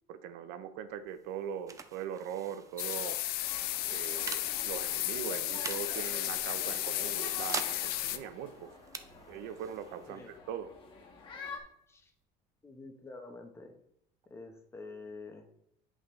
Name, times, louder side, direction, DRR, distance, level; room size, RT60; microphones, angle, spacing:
voice 1, 0.1-3.2 3.9-8.7 9.3-10.7, right 8 dB, 80° right, 12 dB, 0.7 m, -41 dB
sound 1, 0.9-12.2, right 5 dB, 20° right, 0.4 m, -47 dB
sound 2, 2.8-8.2, left 14 dB, 70° left, 0.5 m, -34 dB
sound 3, 3.4-11.6, left 4 dB, 30° left, 1.3 m, -48 dB
voice 2, 12.6-13.8 14.3-15.5, left 3 dB, 15° left, 4 dB, 0.9 m, -47 dB
8.2 x 5.4 x 3.1 m, 0.73 s
cardioid pair, 145°, 17 cm